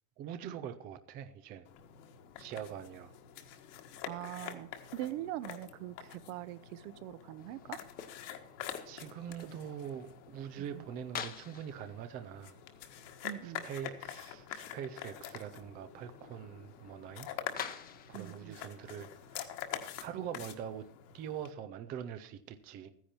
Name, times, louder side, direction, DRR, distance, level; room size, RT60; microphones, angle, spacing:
voice 1, 0.2-1.7 2.4-3.1 8.8-12.6 13.4-17.3 17.6-17.8 18.1-19.5 20.0-20.9 21.1-22.9, right 9 dB, 20° right, 9 dB, 0.3 m, -43 dB
sound 1, 1.6-21.5, left 10 dB, 55° left, 1.7 m, -46 dB
voice 2, 4.1-7.8 9.6-9.8 10.6-10.8 13.2-13.6 18.1-18.5 20.1-20.2, right 14 dB, 55° right, 16 dB, 0.8 m, -42 dB
sound 2, 7.4-20.9, left 8 dB, 20° left, 0.8 m, -51 dB
14.0 x 10.0 x 4.3 m, 0.69 s
supercardioid pair, 160°, 45 cm